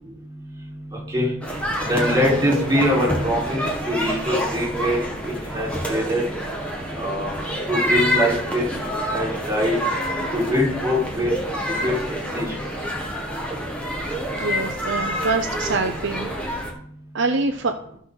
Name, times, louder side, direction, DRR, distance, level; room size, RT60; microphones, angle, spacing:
sound 1, 1.4-16.7, equal, 5° left, 1.5 m, -27 dB
voice 1, 1.8-5.0 5.5-6.2 6.9-7.3 7.7-8.7 9.1-9.7 10.3-11.3 11.8-11.9 12.3-12.5, equal, 15° right, -4 dB, 4.5 m, -22 dB
voice 2, 14.4-16.5 17.1-17.7, right 3 dB, 55° right, 4 dB, 0.7 m, -25 dB
15.5 x 6.1 x 4.0 m, 0.66 s
head